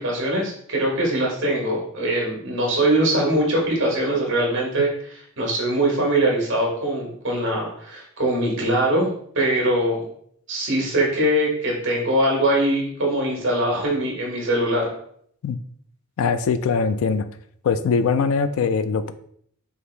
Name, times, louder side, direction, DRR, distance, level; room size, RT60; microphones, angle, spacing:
voice 1, 0.0-9.1 9.3-10.0 10.5-14.9, right 1 dB, 55° right, -2 dB, 1.3 m, -22 dB
voice 2, 16.2-17.3 17.6-19.1, left 5 dB, 70° left, 12 dB, 0.3 m, -21 dB
4.8 x 2.5 x 3.2 m, 0.66 s
head